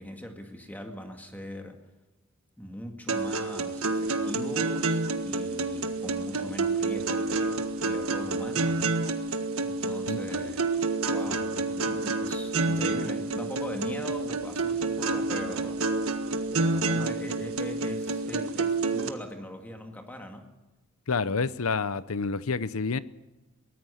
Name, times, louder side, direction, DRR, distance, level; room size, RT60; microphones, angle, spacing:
voice 1, 0.0-1.8 2.6-5.0 5.3-9.2 9.6-10.8 11.1-16.2 16.5-20.6, equal, 10° left, 2.1 m, -41 dB
sound 1, 3.1-19.1, right 3 dB, 85° right, 1.6 m, -29 dB
voice 2, 21.1-23.0, left 4 dB, 85° left, 0.8 m, -28 dB
23.0 x 19.0 x 6.6 m
head